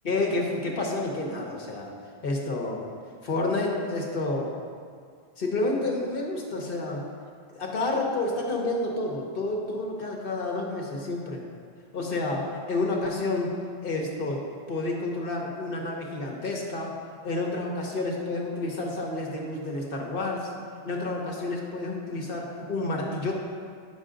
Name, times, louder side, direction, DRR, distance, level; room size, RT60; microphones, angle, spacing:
voice 1, 0.0-1.9 2.2-2.8 3.2-4.5 5.4-7.1 7.5-11.4 11.9-14.4 14.7-17.0 17.2-20.5 20.8-23.3, left 2 dB, 60° left, 0 dB, 1.2 m, -29 dB
8.9 x 5.9 x 3.8 m, 2.1 s
omnidirectional pair, 1.0 m